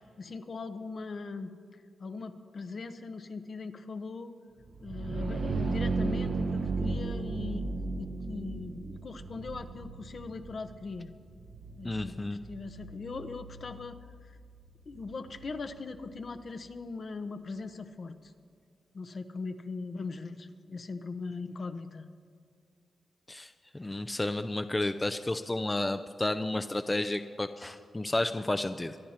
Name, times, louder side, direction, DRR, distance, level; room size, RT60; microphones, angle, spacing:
voice 1, 0.2-1.5 2.0-4.3 4.8-7.7 8.0-11.1 11.8-14.0 14.3-14.4 14.9-18.3 18.9-22.0, left 4 dB, 55° left, 8 dB, 1.0 m, -40 dB
sound 1, 4.7-16.3, right 3 dB, 65° right, 1.1 m, -36 dB
voice 2, 11.8-12.4 23.3-29.0, left 2 dB, 20° left, 9 dB, 0.5 m, -32 dB
24.0 x 10.0 x 4.4 m, 2.1 s
cardioid pair, 70°, 0 cm